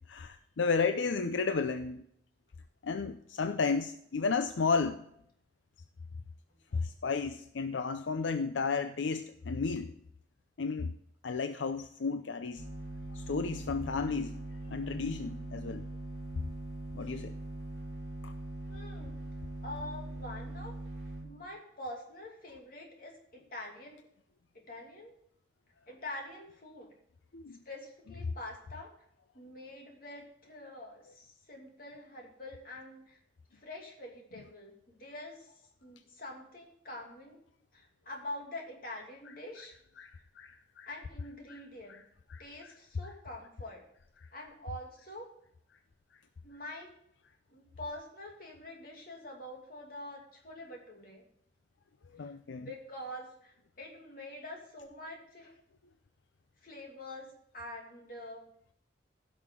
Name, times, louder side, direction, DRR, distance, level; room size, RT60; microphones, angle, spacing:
voice 1, 0.1-2.0 2.8-5.0 6.7-9.9 10.6-11.0 11.2-12.7 13.1-14.4 14.7-15.8 16.9-17.3 18.2-18.3 27.3-27.6 40.0-40.9 41.5-41.6 41.9-42.0 42.3-42.7 52.1-52.7, left 4 dB, 85° left, 9 dB, 0.5 m, -33 dB
sound 1, 12.6-21.2, right 1 dB, 20° left, 4.7 m, -42 dB
voice 2, 18.7-20.7 21.2-24.1 24.5-25.1 25.9-26.9 27.6-28.9 29.3-33.2 33.5-35.5 35.8-37.4 37.7-39.7 40.9-42.0 42.4-43.8 44.3-45.3 46.4-46.9 47.5-51.2 52.2-55.5 56.6-58.4, left 1 dB, 50° left, 0 dB, 2.6 m, -45 dB
15.5 x 6.4 x 3.7 m, 0.71 s
head